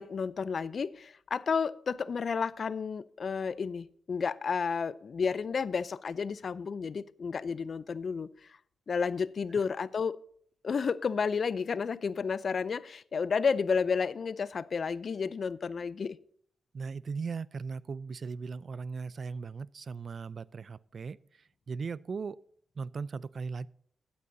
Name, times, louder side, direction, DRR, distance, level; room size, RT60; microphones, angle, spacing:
voice 1, 0.0-8.3 8.9-10.2 10.6-16.2, left 5 dB, 60° left, 0.5 m, -31 dB
voice 2, 16.7-22.4 22.8-23.7, right 5 dB, 60° right, 0.4 m, -38 dB
15.5 x 8.6 x 2.7 m
supercardioid pair, 50°, 0 cm